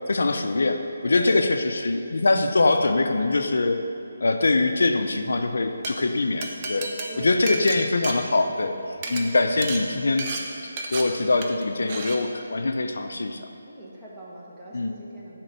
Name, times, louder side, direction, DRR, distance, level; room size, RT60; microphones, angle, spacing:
voice 1, 0.1-3.8 4.2-6.9 7.2-8.8 9.1-10.3 10.9-13.5 14.7-14.9, left 3 dB, 75° left, 6 dB, 0.6 m, -23 dB
voice 2, 1.0-1.6 7.1-7.5 9.0-9.3 13.6-15.4, right 1 dB, 10° right, -6 dB, 1.3 m, -39 dB
Glass, 5.6-5.9 6.4-8.7 9.0-9.2 9.6-9.8 10.2-10.4 10.8-11.0 11.4-11.6 11.9-12.2, right 3 dB, 30° right, 0.7 m, -32 dB
9.0 x 3.7 x 6.7 m, 2.6 s
hypercardioid pair, 165°, 0 cm